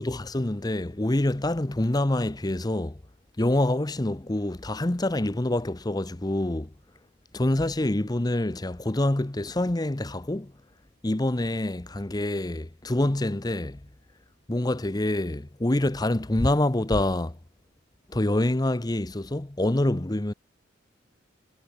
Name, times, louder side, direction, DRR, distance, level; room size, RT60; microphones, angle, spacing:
voice 1, 0.0-3.0 3.4-6.7 7.3-10.5 11.0-13.8 14.5-17.4 18.1-20.3, left 1 dB, 20° left, 0.8 m, -26 dB
head